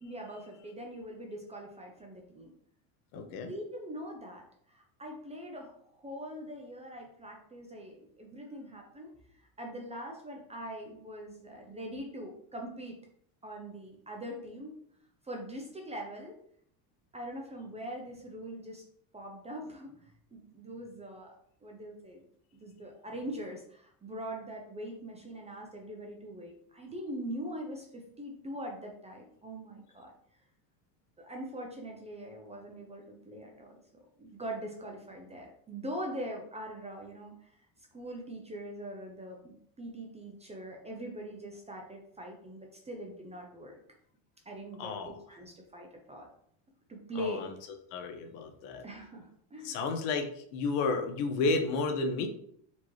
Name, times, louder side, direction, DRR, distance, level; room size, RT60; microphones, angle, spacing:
voice 1, 0.0-2.5 3.1-9.1 9.4-13.0 13.4-14.7 15.2-16.4 17.1-18.8 19.1-21.4 21.6-22.2 22.6-30.1 31.2-33.7 34.2-37.5 37.9-43.7 44.5-46.3 46.9-47.4 48.8-49.9, equal, 15° right, 1 dB, 0.4 m, -42 dB
voice 2, 3.1-3.5 44.8-45.2 47.1-47.5 47.9-48.8 49.6-52.3, left 3 dB, 70° left, 5 dB, 0.9 m, -32 dB
4.3 x 2.8 x 3.1 m, 0.66 s
supercardioid pair, 130°, 48 cm